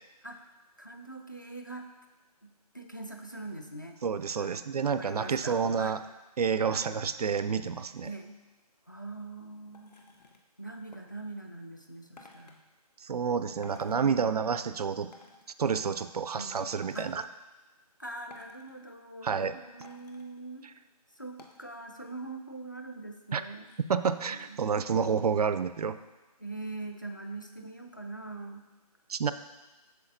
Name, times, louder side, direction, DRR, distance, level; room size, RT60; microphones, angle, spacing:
voice 1, 0.2-1.9 2.4-4.0 4.4-6.0 6.7-6.9 8.0-8.3 8.9-9.9 10.6-12.6 13.6-14.4 16.3-17.1 18.0-20.7 21.1-23.7 24.3-24.6 26.4-28.6, right 2 dB, 30° left, 3 dB, 0.4 m, -43 dB
voice 2, 4.0-6.0 6.4-8.1 13.0-15.1 15.6-17.2 19.2-19.6 23.3-23.4 23.9-26.0 29.1-29.3, right 6 dB, 70° right, 12 dB, 0.4 m, -29 dB
sound 1, 9.7-10.4 10.9-11.0 12.2-12.6 13.6-14.0 15.1-15.5 16.7-17.2 18.3-18.8 19.8-20.3 21.4-21.7 22.1-22.2 22.4-22.9 23.6-24.4 24.9-25.0, left 3 dB, 85° left, 1.0 m, -55 dB
7.9 x 6.5 x 2.6 m, 1.1 s
hypercardioid pair, 180°, 20 cm